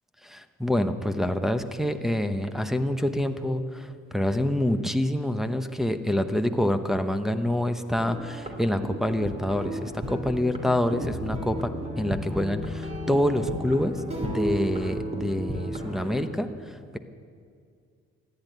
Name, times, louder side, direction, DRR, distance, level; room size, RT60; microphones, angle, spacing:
voice 1, 0.2-17.0, left 1 dB, ahead, 7 dB, 0.9 m, -27 dB
sound 1, 8.0-16.3, equal, 20° right, 2.9 m, -34 dB
14.5 x 10.0 x 9.3 m, 2.3 s
cardioid pair, 90°, 30 cm